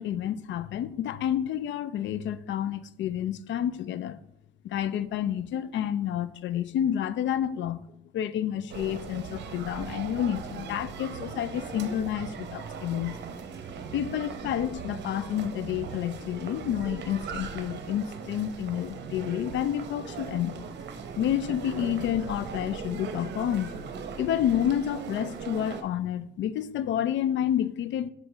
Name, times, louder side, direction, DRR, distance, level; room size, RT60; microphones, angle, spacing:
voice 1, 0.0-4.2 4.6-13.2 13.9-20.6 21.2-23.8 24.2-28.1, left 10 dB, 70° left, 0.4 m, -29 dB
sound 1, 8.7-25.8, right 6 dB, 60° right, 0.7 m, -39 dB
7.3 x 4.0 x 3.4 m
cardioid pair, 90°, 20 cm